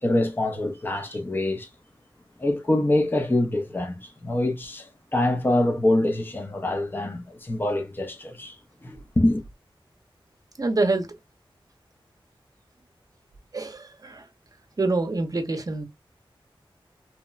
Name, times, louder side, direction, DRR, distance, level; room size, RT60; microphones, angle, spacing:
voice 1, 0.0-1.7 2.4-9.4, left 1 dB, 20° left, 0.5 m, -25 dB
voice 2, 10.6-11.1 13.5-14.3 14.8-15.8, right 2 dB, 40° right, 0.6 m, -26 dB
2.9 x 2.0 x 2.3 m
wide cardioid pair, 75°, 9 cm